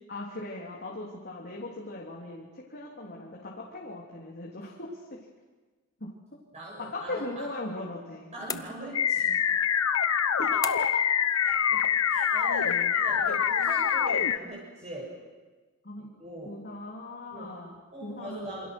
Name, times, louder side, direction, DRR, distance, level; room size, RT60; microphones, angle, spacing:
voice 1, 0.1-5.2 6.0-6.1 6.8-8.7 10.4-10.9 12.6-12.9 15.8-16.1 16.5-17.8 18.0-18.4, left 2 dB, 50° left, -3 dB, 3.4 m, -39 dB
voice 2, 6.5-7.5 8.3-9.4 10.3-10.4 11.5-15.1 16.2-16.6 17.3-17.5 17.9-18.7, right 1 dB, 30° right, -4 dB, 7.4 m, -41 dB
sound 1, 8.5-9.2 10.6-11.1, left 5 dB, 15° left, 0.7 m, -37 dB
sound 2, 8.9-14.4, left 8 dB, 80° left, 1.0 m, -25 dB
28.0 x 26.0 x 6.3 m, 1.3 s
head